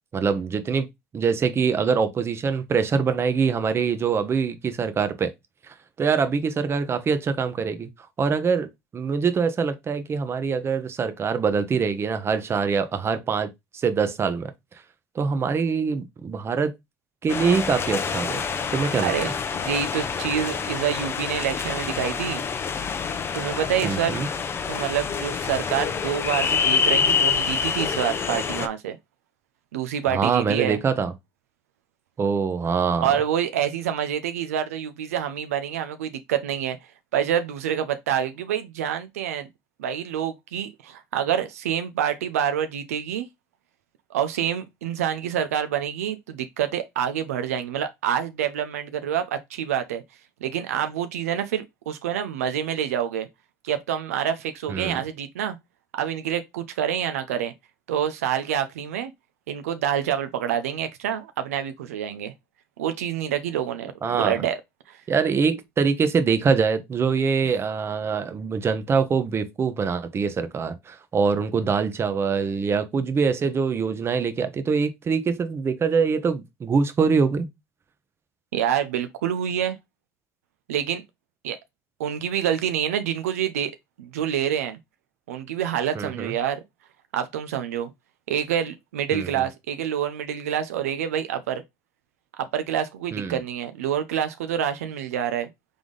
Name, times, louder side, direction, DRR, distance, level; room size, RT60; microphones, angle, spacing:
voice 1, 0.1-0.9 1.1-5.3 5.7-7.9 8.2-14.5 15.1-16.7 17.2-18.4 18.7-19.3 23.8-24.3 30.1-31.1 32.2-33.1 54.7-55.0 64.0-64.4 65.1-77.5 85.9-86.3 89.1-89.4 93.1-93.4, right 5 dB, 35° right, 0.8 m, -24 dB
sound 1, 17.3-28.7, left 6 dB, 30° left, 0.6 m, -26 dB
voice 2, 19.0-22.4 23.3-24.2 24.7-29.0 29.7-30.8 33.0-36.8 37.1-39.5 39.8-43.3 44.1-50.0 50.4-53.3 53.6-55.6 55.9-57.5 57.9-59.1 59.5-62.3 62.8-64.6 64.9-65.0 78.5-79.8 80.7-81.0 81.4-81.6 82.0-83.7 84.0-84.8 85.3-86.6 87.1-87.9 88.3-91.6 92.4-95.5, right 9 dB, 90° right, 0.5 m, -27 dB
3.6 x 3.4 x 3.8 m
hypercardioid pair, 80°, 8 cm